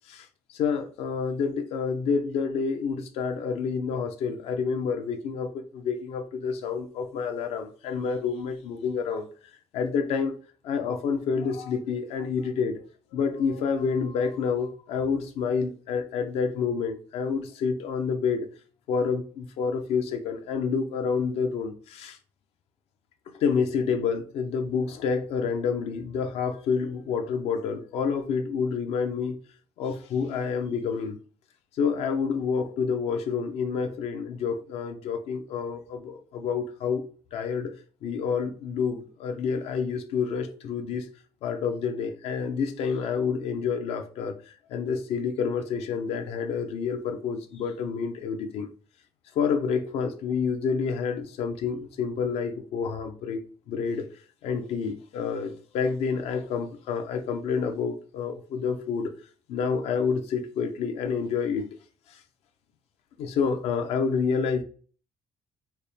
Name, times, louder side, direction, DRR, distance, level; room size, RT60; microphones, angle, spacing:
voice 1, 0.1-9.3 9.7-10.4 10.6-12.8 13.1-18.5 18.9-22.2 23.4-29.4 29.8-31.2 31.8-37.1 37.3-37.7 38.0-41.1 41.4-44.3 44.7-48.7 49.4-54.1 54.4-59.1 59.5-61.7 62.1-62.2 63.2-64.6, left 5 dB, 70° left, 0.6 m, -28 dB
4.1 x 2.1 x 3.4 m
cardioid pair, 155°, 11 cm